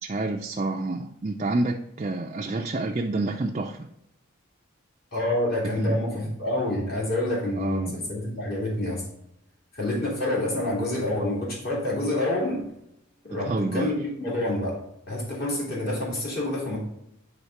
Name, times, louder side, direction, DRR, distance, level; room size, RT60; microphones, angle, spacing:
voice 1, 0.0-3.9 5.8-6.3 7.6-8.0 13.5-14.0, right 2 dB, 30° right, 0.5 m, -29 dB
voice 2, 5.1-9.0 9.7-12.7 13.2-14.8 15.1-16.8, left 1 dB, 45° left, 2.5 m, -27 dB
9.3 x 3.7 x 5.7 m
head